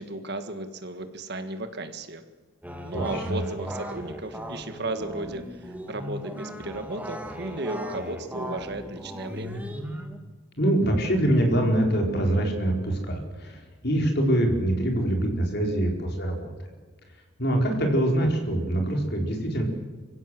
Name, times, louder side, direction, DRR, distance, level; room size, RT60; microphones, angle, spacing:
voice 1, 0.0-2.2 2.8-9.6, right 2 dB, 50° right, 9 dB, 1.7 m, -34 dB
sound 1, 2.6-10.2, equal, 5° right, 1.8 m, -37 dB
voice 2, 2.9-3.4 10.6-13.6 13.8-16.5 17.4-19.6, right 1 dB, 50° left, 2 dB, 4.3 m, -24 dB
25.0 x 16.0 x 7.7 m, 1.4 s
head